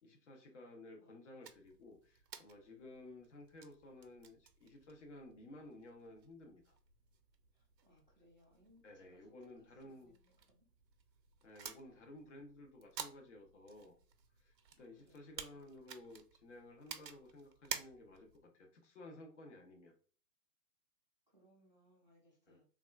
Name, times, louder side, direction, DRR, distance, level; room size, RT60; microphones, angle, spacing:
voice 1, 0.0-6.7 8.8-10.1 11.4-13.9 14.4-19.9 22.5-22.6, left 1 dB, 45° left, 3 dB, 0.7 m, -55 dB
voice 2, 1.0-1.4 7.5-10.7 11.9-12.3 14.8-15.8 18.8-19.0 21.3-22.7, equal, 30° right, -3 dB, 0.4 m, -70 dB
sound 1, 1.4-18.4, right 7 dB, 85° right, 0.6 m, -53 dB
3.5 x 2.3 x 2.3 m, 0.42 s
hypercardioid pair, 150°, 49 cm